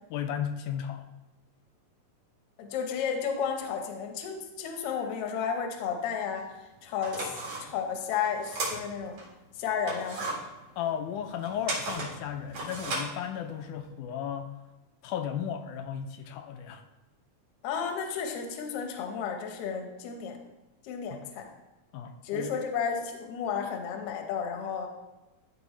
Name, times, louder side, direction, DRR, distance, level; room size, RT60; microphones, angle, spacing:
voice 1, 0.1-1.1 10.8-14.6 15.0-16.8 21.1-21.3 21.9-22.5, left 9 dB, 85° left, 7 dB, 2.0 m, -35 dB
voice 2, 2.6-6.5 6.8-7.3 7.6-9.2 9.6-10.4 17.6-20.4 20.8-21.5 22.2-24.9, left 7 dB, 65° left, 3 dB, 1.7 m, -32 dB
sound 1, 6.4-6.5 6.9-9.3 9.7-13.8, right 2 dB, 65° right, 3.2 m, -36 dB
12.5 x 4.4 x 3.1 m, 1.1 s
omnidirectional pair, 3.5 m